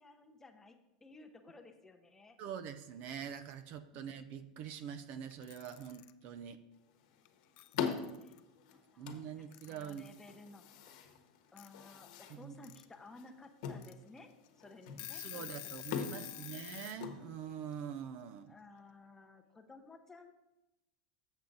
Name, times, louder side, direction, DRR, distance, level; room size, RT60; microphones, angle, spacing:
voice 1, 0.0-2.4 3.9-4.1 8.2-8.4 8.7-9.1 9.4-10.7 11.5-15.5 16.0-16.6 18.5-20.3, left 3 dB, 10° left, 5 dB, 0.7 m, -56 dB
voice 2, 2.4-6.6 9.0-10.0 12.3-12.5 15.1-18.5, right 8 dB, 45° right, 10 dB, 0.5 m, -44 dB
Alarm / Clock, 5.3-6.1 7.2-7.3 7.6-8.4 9.5-10.1 11.6-11.7 12.4-12.8 13.3-13.4 13.8-13.9 14.5-14.6 14.8-17.0, left 17 dB, 50° left, 0.4 m, -48 dB
sound 1, 6.7-17.8, left 7 dB, 70° left, 1.1 m, -44 dB
7.2 x 7.1 x 3.9 m, 0.95 s
supercardioid pair, 140°, 4 cm